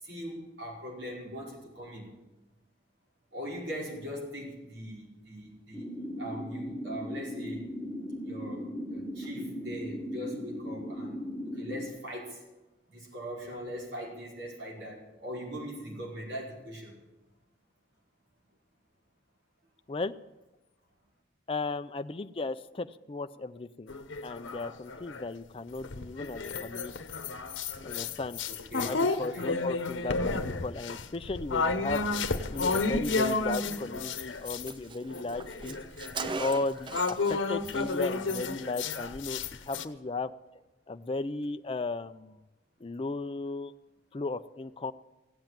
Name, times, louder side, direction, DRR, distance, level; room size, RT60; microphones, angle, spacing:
voice 1, 0.0-2.1 3.3-5.9 6.2-7.7 8.2-11.2 11.5-12.4 12.9-17.0 28.5-28.9 29.3-29.5 36.1-36.3, equal, 65° right, -3 dB, 5.2 m, -41 dB
sound 1, 5.7-11.9, equal, 5° right, 1.7 m, -38 dB
voice 2, 21.5-23.9 24.2-26.9 27.8-28.4 28.8-32.0 32.5-35.8 36.4-40.3 40.9-42.4 42.8-43.7 44.1-44.9, left 3 dB, 30° left, 9 dB, 0.4 m, -35 dB
sound 2, 23.9-25.3 25.8-34.7 35.1-39.8, left 3 dB, 80° left, 0.9 m, -32 dB
Car, 33.7-33.9 34.2-34.3 34.4-37.4 37.7-37.9, right 4 dB, 25° right, 0.4 m, -39 dB
16.5 x 7.9 x 8.9 m, 1.0 s
head